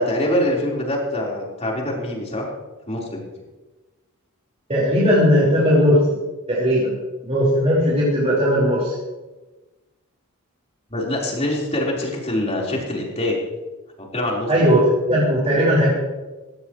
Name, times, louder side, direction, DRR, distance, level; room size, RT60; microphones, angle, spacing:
voice 1, 0.0-2.5 2.9-3.2 10.9-13.4 14.0-14.5, left 1 dB, 30° left, -3 dB, 4.4 m, -24 dB
voice 2, 4.7-6.2 6.5-6.9 7.2-8.9 14.5-14.8 15.1-15.9, equal, 30° right, -8 dB, 5.1 m, -17 dB
18.0 x 17.0 x 3.2 m, 1.2 s
head